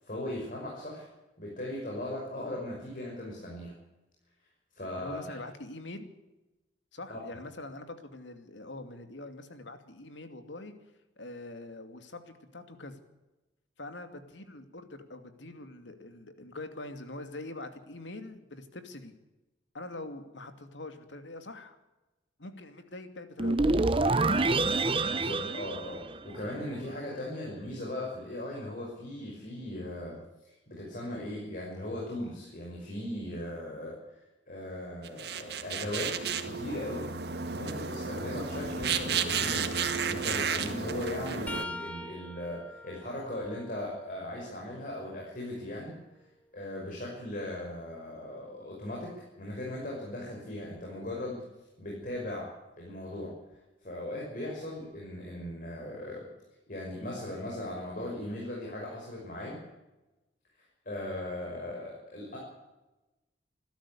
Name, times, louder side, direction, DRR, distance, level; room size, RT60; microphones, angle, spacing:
voice 1, 0.0-1.1 1.4-3.7 4.8-5.2 7.1-7.2 24.6-30.2 30.5-36.2 36.4-37.1 37.5-39.7 40.0-46.0 46.5-51.4 51.8-52.5 52.8-53.3 53.8-56.2 56.7-59.6 60.9-62.4, left 1 dB, 50° left, -2 dB, 5.7 m, -38 dB
voice 2, 5.0-6.1 6.9-10.8 11.2-13.0 13.8-19.1 19.7-21.8 22.4-23.7 24.5-24.7, left 2 dB, 85° left, 8 dB, 2.7 m, -44 dB
sound 1, 23.4-26.6, right 3 dB, 30° right, 0.9 m, -27 dB
sound 2, 35.0-41.6, right 6 dB, 60° right, 1.9 m, -32 dB
sound 3, 41.5-45.2 45.8-47.7 50.6-50.8 52.0-52.2 53.5-53.6, left 1 dB, 10° left, 1.3 m, -46 dB
27.0 x 12.5 x 8.6 m, 1.0 s
head